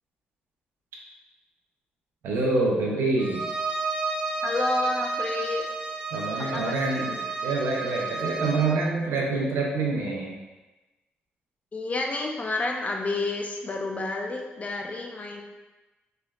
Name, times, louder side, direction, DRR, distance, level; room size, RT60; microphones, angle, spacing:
voice 1, 2.2-3.4 6.1-10.4, right 3 dB, 85° right, -2 dB, 0.6 m, -26 dB
Bowed string instrument, 3.2-8.8, right 3 dB, 25° right, 1.2 m, -31 dB
voice 2, 4.4-5.6 6.4-6.7 11.7-15.4, left 2 dB, 40° left, 1 dB, 0.5 m, -29 dB
3.2 x 3.0 x 2.3 m, 1.1 s
cardioid pair, 65°, 4 cm